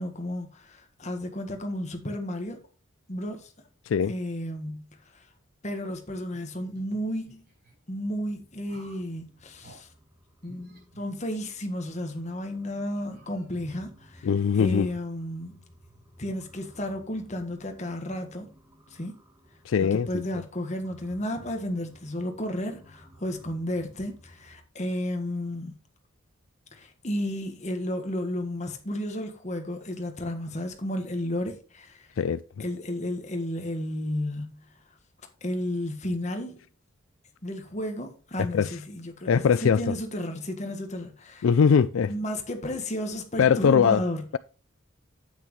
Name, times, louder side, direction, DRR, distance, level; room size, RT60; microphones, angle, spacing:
voice 1, 0.0-2.6 3.1-3.5 4.1-4.8 5.1-5.3 5.6-7.4 7.9-9.9 10.4-14.3 14.6-15.6 16.2-18.5 18.9-19.1 19.8-25.8 26.7-32.2 32.6-34.5 35.4-36.6 37.4-41.5 42.1-44.2, left 1 dB, 35° left, 1.6 m, -33 dB
sound 1, 6.3-7.7 8.7-9.1 9.6-9.8 10.4-11.7 12.1-12.3 12.9-13.9, right 1 dB, 50° right, 5.5 m, -54 dB
sound 2, 7.9-24.6, equal, 15° right, 1.5 m, -57 dB
voice 2, 14.2-14.9 19.7-20.1 32.2-32.4 38.5-38.8 39.3-40.0 41.4-42.1 43.4-44.0, left 6 dB, 75° left, 0.4 m, -21 dB
9.1 x 8.6 x 3.2 m
head